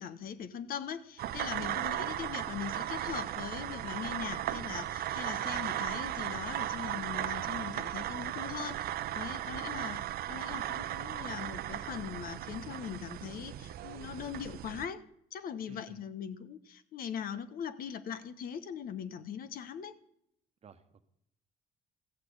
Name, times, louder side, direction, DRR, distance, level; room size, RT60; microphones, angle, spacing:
voice 1, 0.0-15.0 15.3-20.0, left 8 dB, 60° left, 12 dB, 1.0 m, -41 dB
sound 1, 1.2-14.9, right 12 dB, 65° right, 0.6 m, -36 dB
voice 2, 1.7-2.3 9.5-9.7 15.7-16.0 20.6-21.1, right 6 dB, 40° right, 9 dB, 1.2 m, -54 dB
14.0 x 6.0 x 8.5 m, 0.73 s
cardioid pair, 110°, 17 cm